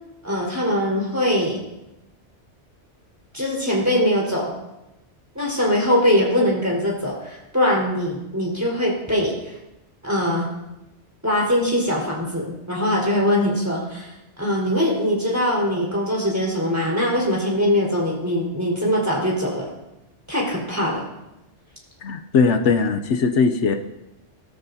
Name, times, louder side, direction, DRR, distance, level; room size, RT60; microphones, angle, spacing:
voice 1, 0.2-1.6 3.3-4.5 5.3-9.5 10.0-10.5 11.2-19.7 20.3-21.0, equal, 15° right, -4 dB, 4.5 m, -22 dB
voice 2, 22.0-23.8, left 4 dB, 75° left, 7 dB, 1.0 m, -19 dB
19.0 x 13.5 x 2.8 m, 0.94 s
omnidirectional pair, 1.2 m